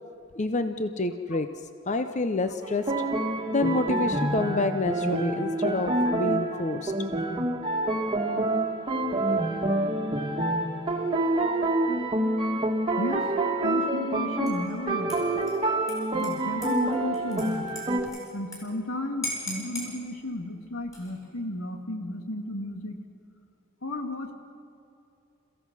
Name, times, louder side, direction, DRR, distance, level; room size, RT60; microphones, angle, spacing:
voice 1, 0.3-1.5 1.9-2.9 3.5-6.9, left 2 dB, 35° left, 9 dB, 0.7 m, -28 dB
sound 1, 2.6-18.0, right 2 dB, 25° right, 1.6 m, -27 dB
voice 2, 13.0-13.3 13.6-15.2 16.1-17.7 18.3-23.0 23.8-24.3, left 2 dB, 85° left, 4 dB, 2.2 m, -34 dB
Dishes pots and pans / Liquid, 14.5-14.8 15.1-18.6 18.9-19.0 19.2-19.9 20.8-21.3, equal, 15° left, 6.5 m, -39 dB
28.0 x 15.5 x 6.2 m, 2.7 s
head